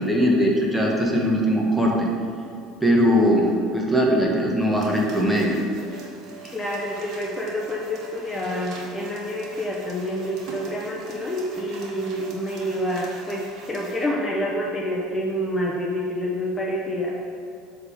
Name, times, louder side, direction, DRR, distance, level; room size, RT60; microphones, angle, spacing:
voice 1, 0.0-2.1 2.8-5.5, equal, 5° right, -2 dB, 1.3 m, -20 dB
sound 1, 4.8-14.1, right 4 dB, 60° right, 1.5 m, -42 dB
voice 2, 6.5-17.2, equal, 20° left, -2 dB, 0.9 m, -28 dB
7.9 x 3.6 x 5.5 m, 2.6 s
supercardioid pair, 100°, 0 cm